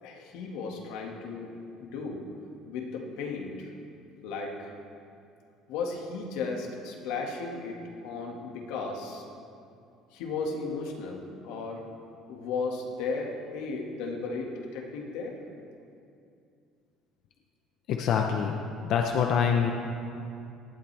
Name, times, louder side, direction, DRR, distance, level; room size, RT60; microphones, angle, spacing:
voice 1, 0.0-2.2 2.7-3.7 4.2-4.7 5.7-9.3 10.1-11.9 12.3-15.4, left 4 dB, 90° left, 1 dB, 1.9 m, -35 dB
voice 2, 17.9-18.6 18.8-19.7, left 7 dB, 55° left, 2 dB, 0.8 m, -25 dB
18.5 x 11.5 x 3.5 m, 2.5 s
cardioid pair, 150°, 0 cm